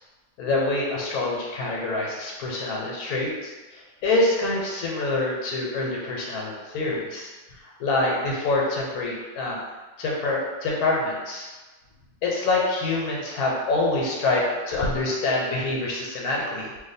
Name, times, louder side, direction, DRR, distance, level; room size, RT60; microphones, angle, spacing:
voice 1, 0.4-9.6 10.0-11.5 12.2-16.7, left 2 dB, 85° left, -3 dB, 1.2 m, -26 dB
2.8 x 2.2 x 4.0 m, 1.2 s
omnidirectional pair, 1.5 m